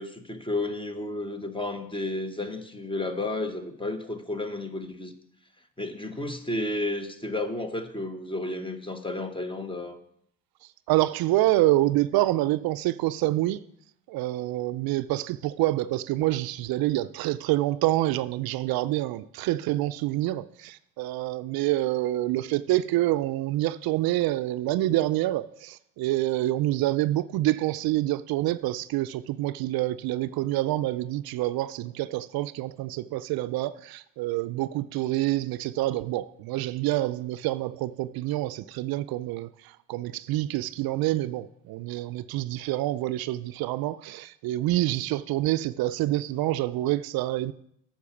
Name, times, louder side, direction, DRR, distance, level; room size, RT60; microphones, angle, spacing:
voice 1, 0.0-5.1 5.8-10.0, left 2 dB, 15° left, 1.0 m, -32 dB
voice 2, 10.9-13.6 14.1-47.5, right 16 dB, 65° right, 0.5 m, -27 dB
8.4 x 6.1 x 7.0 m
cardioid pair, 95°, 39 cm